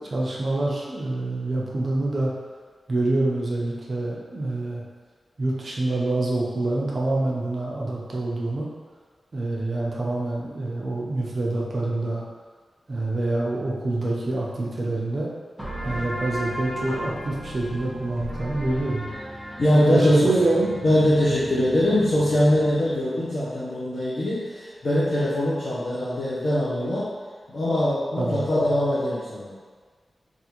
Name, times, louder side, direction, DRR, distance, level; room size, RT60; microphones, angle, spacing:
voice 1, 0.0-2.3 2.9-4.8 5.4-8.7 9.3-12.2 12.9-15.3 15.8-19.0 19.7-20.8 28.2-28.4, right 2 dB, 50° right, -4 dB, 0.6 m, -26 dB
sound 1, 15.6-22.9, equal, ahead, 0.9 m, -35 dB
voice 2, 19.6-20.2 20.8-27.1 27.5-29.5, left 1 dB, 60° left, -10 dB, 0.7 m, -22 dB
3.4 x 2.5 x 2.9 m, 1.5 s
wide cardioid pair, 90°, 0 cm